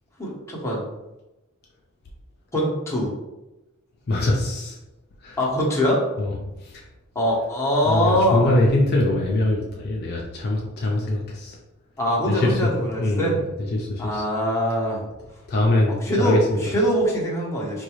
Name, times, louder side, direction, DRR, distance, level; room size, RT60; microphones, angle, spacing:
voice 1, 0.2-0.9 2.5-3.1 5.4-6.0 7.1-8.5 12.0-13.4 14.0-15.0 16.0-17.8, equal, 15° left, -4 dB, 0.8 m, -23 dB
voice 2, 4.1-4.8 5.2-5.4 6.2-6.4 6.6-6.8 7.8-11.6 12.3-12.7 13.0-14.2 15.5-16.6, left 1 dB, 50° left, -2 dB, 0.5 m, -23 dB
3.8 x 2.3 x 3.0 m, 0.99 s
head